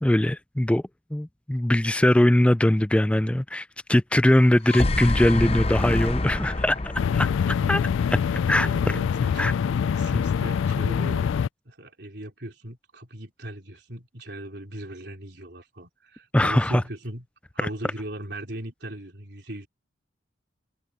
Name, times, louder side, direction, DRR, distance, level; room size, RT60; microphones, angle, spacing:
voice 1, 0.0-0.8 1.1-7.3 7.7-7.8 8.1-8.2 8.5-8.7 9.4-9.5 16.3-16.8 17.6-17.7, left 1 dB, 5° left, 0.3 m, -21 dB
sound 1, 4.4-8.6, left 2 dB, 30° left, 0.7 m, -27 dB
sound 2, 7.0-11.5, left 7 dB, 90° left, 0.3 m, -24 dB
voice 2, 7.4-9.6 9.9-11.4 11.6-17.2 17.5-19.7, right 1 dB, 60° right, 4.3 m, -38 dB
open air
head